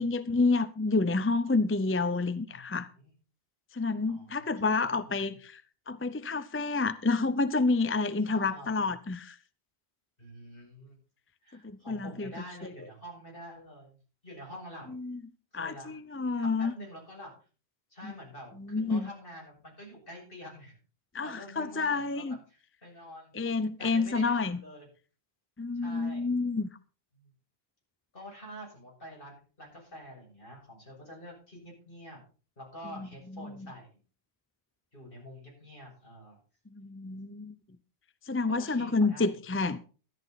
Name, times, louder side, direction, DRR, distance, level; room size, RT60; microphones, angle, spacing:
voice 1, 0.0-2.9 3.7-9.4 11.6-12.3 14.9-15.2 15.5-16.7 18.0-18.1 18.6-19.1 21.1-22.4 23.3-24.6 25.6-26.7 33.0-33.7 36.7-37.5 38.3-39.8, left 3 dB, 15° left, 0.5 m, -29 dB
voice 2, 4.1-5.4 8.3-8.9 10.2-11.0 11.4-14.0 14.2-14.9 15.5-16.0 16.4-17.3 17.9-20.8 21.2-23.3 23.8-24.9 25.7-26.2 27.1-27.3 28.1-32.2 32.6-34.0 34.9-36.4 38.5-39.4, equal, 55° left, 7.5 m, -47 dB
13.5 x 11.5 x 4.0 m
omnidirectional pair, 1.1 m